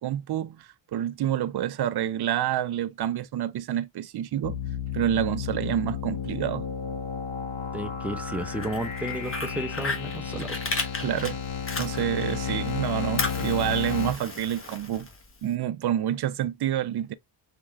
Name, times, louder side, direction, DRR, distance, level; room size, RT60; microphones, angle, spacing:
voice 1, 0.0-4.6 4.9-6.7 10.3-10.5 11.0-11.4 11.8-15.1 15.4-17.1, right 11 dB, 55° right, 0.5 m, -28 dB
sound 1, 4.4-14.1, left 7 dB, 85° left, 1.0 m, -32 dB
voice 2, 7.7-10.5, right 1 dB, 5° right, 0.7 m, -33 dB
Fire, 8.4-12.4 12.7-15.5, left 3 dB, 25° left, 1.0 m, -34 dB
3.7 x 3.6 x 3.1 m
cardioid pair, 100°, 48 cm